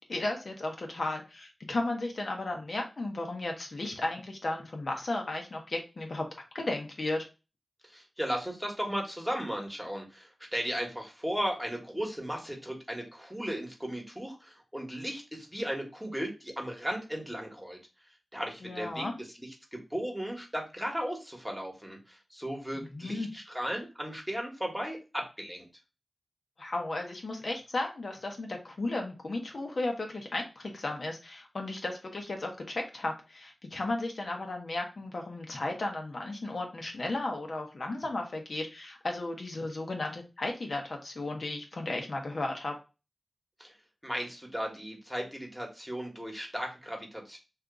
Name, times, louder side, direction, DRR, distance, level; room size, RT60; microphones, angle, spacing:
voice 1, 0.1-6.3 6.5-7.3 18.6-19.1 22.7-23.3 26.6-42.7, left 2 dB, 60° left, 2 dB, 0.7 m, -34 dB
voice 2, 7.8-17.8 18.3-25.7 43.6-43.7 44.0-47.4, equal, 5° right, 0 dB, 1.1 m, -36 dB
2.8 x 2.4 x 3.6 m, 0.29 s
wide cardioid pair, 65°, 0 cm